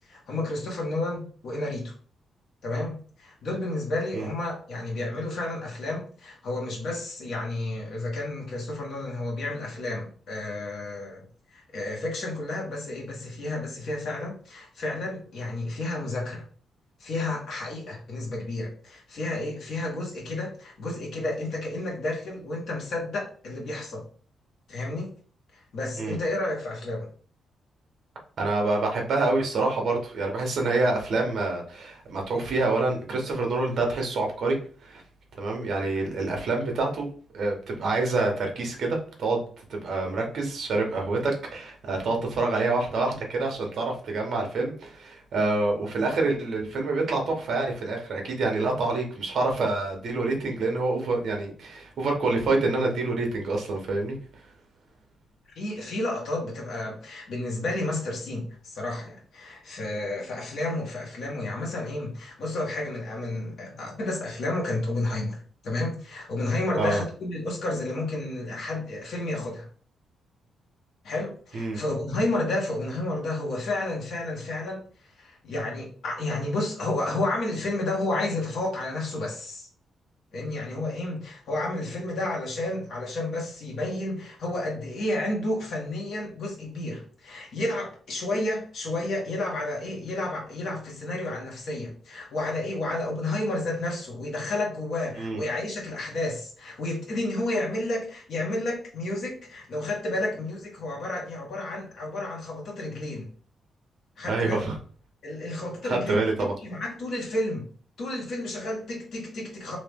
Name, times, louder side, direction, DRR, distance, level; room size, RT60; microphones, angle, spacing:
voice 1, 0.1-1.9 2.6-11.2 11.5-16.4 17.0-24.0 24.7-25.1 25.5-27.1 55.5-69.7 71.0-79.7 80.3-103.3 104.2-104.6 105.2-107.7 108.0-109.8, left 2 dB, 60° left, -2 dB, 1.5 m, -31 dB
voice 2, 28.4-34.6 34.8-35.0 35.4-37.1 37.3-39.4 39.7-54.2 66.8-67.0 71.5-71.8 95.2-95.4 104.3-104.7 105.8-106.5, right 3 dB, 55° right, 2 dB, 1.1 m, -27 dB
3.2 x 2.9 x 3.5 m, 0.43 s
wide cardioid pair, 155°, 0 cm